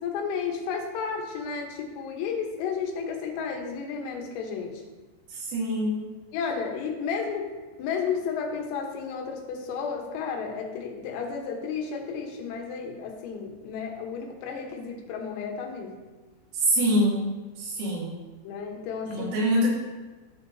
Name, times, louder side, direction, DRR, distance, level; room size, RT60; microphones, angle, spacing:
voice 1, 0.0-4.8 6.3-7.5 7.8-16.0 18.4-19.3, left 6 dB, 85° left, 1 dB, 3.8 m, -32 dB
voice 2, 5.5-6.0 16.6-17.3 17.6-18.2 19.1-19.7, equal, 75° right, -6 dB, 4.9 m, -24 dB
14.0 x 6.6 x 2.7 m, 1.3 s
omnidirectional pair, 5.9 m